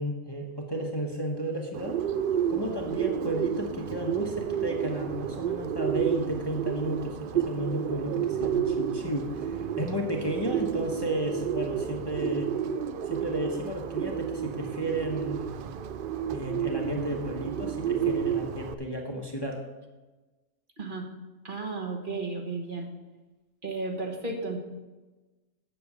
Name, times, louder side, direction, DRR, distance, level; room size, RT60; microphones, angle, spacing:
voice 1, 0.0-2.0 2.5-12.5 13.0-15.6 16.3-19.6, equal, 20° left, 1 dB, 1.1 m, -33 dB
Bird, 1.7-18.7, right 9 dB, 60° right, 0.5 m, -31 dB
voice 2, 20.8-21.1 21.4-22.9 23.6-24.6, right 3 dB, 40° right, 1 dB, 1.5 m, -33 dB
7.8 x 6.8 x 8.2 m, 1.2 s
omnidirectional pair, 1.4 m